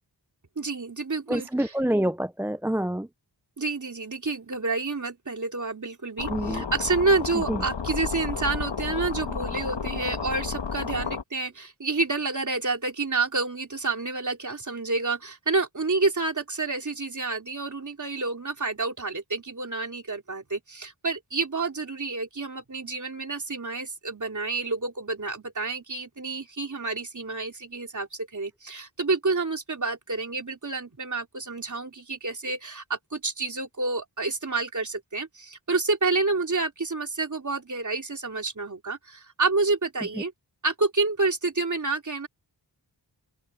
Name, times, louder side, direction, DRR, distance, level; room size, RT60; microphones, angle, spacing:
voice 1, 0.6-1.8 3.6-40.3 40.6-42.3, right 3 dB, 45° right, 3.5 m, -29 dB
voice 2, 1.3-3.1 6.3-6.6 7.5-7.6, right 1 dB, 5° right, 0.4 m, -26 dB
sound 1, 6.2-11.2, left 6 dB, 80° left, 1.5 m, -32 dB
open air
wide cardioid pair, 85°, 42 cm